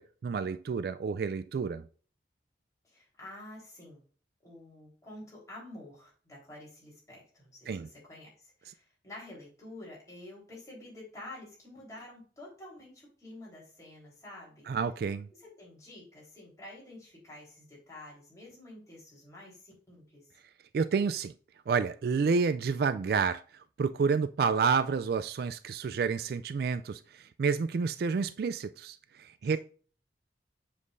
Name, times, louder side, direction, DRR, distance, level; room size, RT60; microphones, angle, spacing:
voice 1, 0.0-1.9 7.7-7.9 14.7-15.3 20.7-21.3 21.7-23.4 23.8-29.6, right 5 dB, 55° right, 0.3 m, -29 dB
voice 2, 2.8-4.0 4.4-14.7 15.3-20.3 29.4-29.6, left 1 dB, 20° left, 3.7 m, -49 dB
7.3 x 6.4 x 2.5 m
head